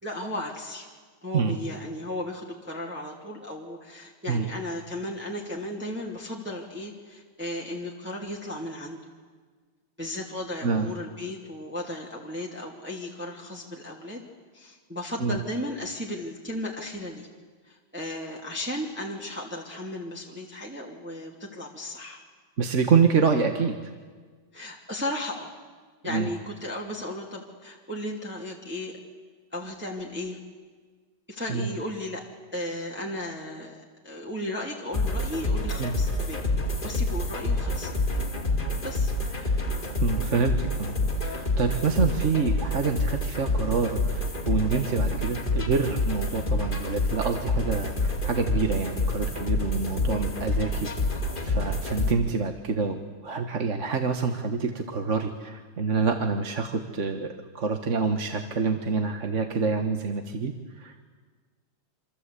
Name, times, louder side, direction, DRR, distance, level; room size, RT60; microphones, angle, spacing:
voice 1, 0.0-0.9 1.2-9.0 10.0-14.2 14.5-17.3 17.6-22.2 24.5-25.5 26.0-29.0 29.5-30.4 31.3-32.2 32.5-36.4 36.8-37.9 38.8-39.1, left 1 dB, 5° right, -2 dB, 2.5 m, -35 dB
voice 2, 22.6-23.9 26.0-26.3 31.5-31.8 35.8-36.0 39.4-39.6 40.0-40.9 41.2-50.9 51.4-60.9, right 5 dB, 40° right, 6 dB, 1.6 m, -27 dB
sound 1, 34.9-52.1, left 2 dB, 25° left, 2.4 m, -27 dB
27.5 x 26.0 x 8.4 m, 1.5 s
omnidirectional pair, 2.2 m